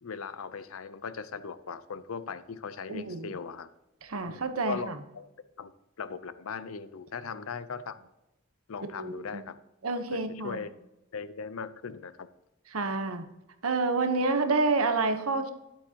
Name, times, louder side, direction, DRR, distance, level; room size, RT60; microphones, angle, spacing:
voice 1, 0.0-3.7 4.3-5.3 5.6-5.7 6.0-8.1 8.7-9.6 10.1-10.7 11.1-12.3, left 5 dB, 75° left, 14 dB, 0.6 m, -39 dB
voice 2, 2.9-3.3 4.0-5.0 8.8-9.4 9.8-10.6 12.7-13.2 13.6-15.5, right 3 dB, 85° right, 8 dB, 1.0 m, -28 dB
9.9 x 8.7 x 2.9 m, 0.93 s
head